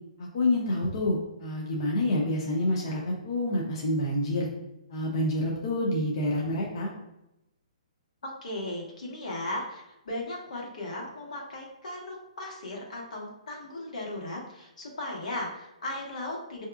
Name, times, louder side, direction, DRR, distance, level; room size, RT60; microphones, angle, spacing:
voice 1, 0.2-4.5 4.9-6.9, left 1 dB, 40° left, -2 dB, 0.6 m, -28 dB
voice 2, 8.2-16.7, left 1 dB, 80° left, -2 dB, 1.4 m, -37 dB
5.8 x 2.7 x 2.4 m, 0.89 s
hypercardioid pair, 175°, 4 cm